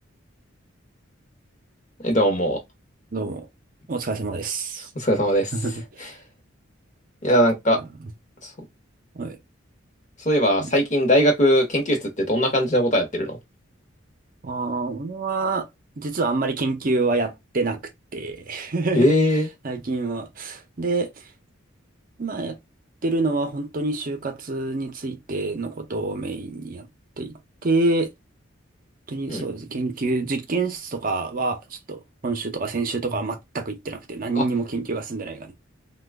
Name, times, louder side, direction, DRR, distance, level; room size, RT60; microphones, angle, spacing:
voice 1, 2.0-2.6 4.9-5.5 7.2-7.8 8.4-8.5 10.2-13.4 19.0-19.5 29.3-29.4 34.3-34.5, equal, 40° left, 0.9 m, -20 dB
voice 2, 3.1-3.5 3.9-4.9 5.5-6.1 7.8-7.9 9.1-9.4 10.6-10.7 14.4-15.7 16.0-17.8 18.1-19.2 19.6-21.1 22.2-22.6 23.0-26.9 27.2-27.3 27.6-28.1 29.1-35.5, right 3 dB, 45° right, 0.6 m, -27 dB
3.0 x 2.3 x 3.4 m
head